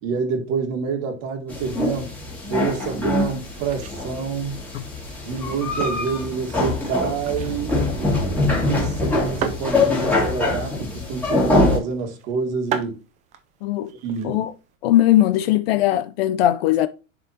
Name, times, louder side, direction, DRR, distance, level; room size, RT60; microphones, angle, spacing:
voice 1, 0.0-2.1 2.5-4.6 5.2-13.0 14.0-14.4, right 5 dB, 40° right, 1.7 m, -27 dB
sound 1, 1.5-11.8, left 2 dB, 5° left, 2.1 m, -24 dB
sound 2, 3.4-14.8, right 8 dB, 20° right, 0.4 m, -38 dB
voice 2, 13.6-13.9 14.2-14.5 14.8-16.9, left 13 dB, 50° left, 0.5 m, -19 dB
10.0 x 3.6 x 2.8 m
supercardioid pair, 140°, 39 cm